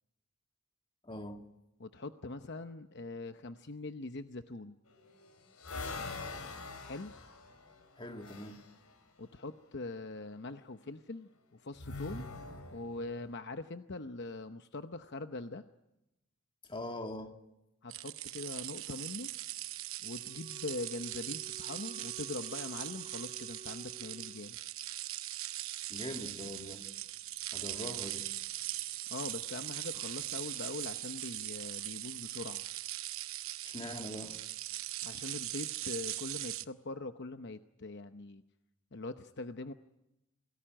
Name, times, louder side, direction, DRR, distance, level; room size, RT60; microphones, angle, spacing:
voice 1, 1.0-1.4 8.0-8.6 16.7-17.3 25.9-26.9 27.5-28.3 33.6-34.4, left 1 dB, 25° left, 2.2 m, -42 dB
voice 2, 1.8-4.7 6.8-7.1 9.2-12.3 12.7-15.6 17.8-19.3 20.0-24.6 29.1-32.6 35.0-38.4 38.9-39.7, left 2 dB, 55° left, 0.8 m, -42 dB
sound 1, 4.9-8.7 11.8-13.2, left 3 dB, 85° left, 4.0 m, -44 dB
sound 2, 17.9-36.6, right 15 dB, 65° right, 0.9 m, -40 dB
Wind instrument woodwind instrument, 20.0-24.4, left 1 dB, 15° right, 6.7 m, -54 dB
27.5 x 18.5 x 8.9 m
head